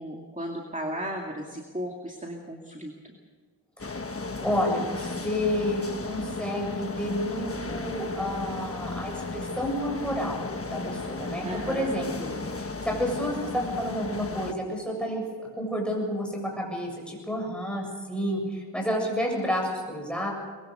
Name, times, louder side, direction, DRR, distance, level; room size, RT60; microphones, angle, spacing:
voice 1, 0.0-3.1 11.4-11.9, equal, 15° right, 1 dB, 2.3 m, -35 dB
sound 1, 3.8-14.5, left 3 dB, 30° left, 1.3 m, -35 dB
voice 2, 4.4-10.4 10.7-12.3 12.6-15.2 15.5-20.3, equal, ahead, -1 dB, 7.3 m, -30 dB
23.5 x 21.5 x 6.7 m, 1.5 s
wide cardioid pair, 95°, 43 cm